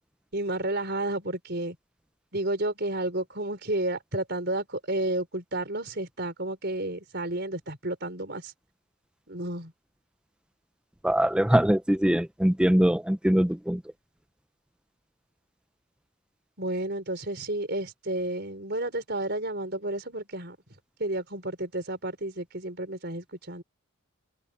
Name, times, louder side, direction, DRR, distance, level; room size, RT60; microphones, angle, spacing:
voice 1, 0.3-1.8 2.3-8.5 9.3-9.7 16.6-20.6 21.0-23.6, right 1 dB, 50° right, 4.8 m, -31 dB
voice 2, 11.0-13.8, equal, 5° right, 0.4 m, -22 dB
head